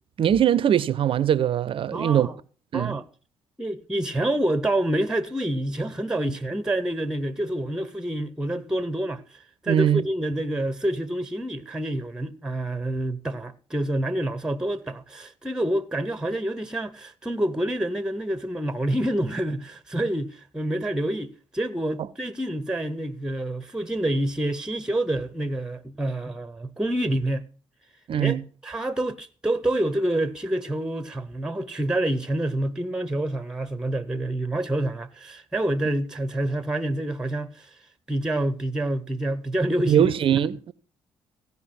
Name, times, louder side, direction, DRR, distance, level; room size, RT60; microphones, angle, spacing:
voice 1, 0.2-2.3 2.7-3.0 9.7-10.0 28.1-28.4 39.9-40.7, right 9 dB, 45° right, 0.5 m, -21 dB
voice 2, 1.9-2.4 2.7-3.0 3.6-27.5 28.2-28.4 28.6-37.8 38.1-40.1, right 1 dB, 5° right, 0.8 m, -27 dB
16.0 x 5.5 x 6.0 m
hypercardioid pair, 50°, 12 cm